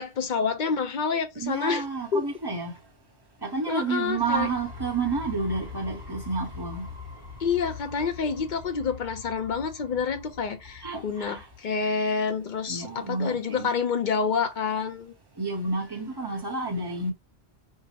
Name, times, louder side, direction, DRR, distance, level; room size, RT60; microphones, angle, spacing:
voice 1, 0.0-1.9 2.1-2.2 3.7-4.5 7.4-15.1, left 5 dB, 50° left, 0.8 m, -28 dB
voice 2, 1.4-2.7 3.4-6.9 10.8-11.5 12.7-13.7 15.4-17.1, right 3 dB, 25° right, 0.9 m, -30 dB
sound 1, 4.1-11.7, left 5 dB, 60° right, 1.2 m, -43 dB
4.6 x 2.1 x 2.8 m
omnidirectional pair, 1.1 m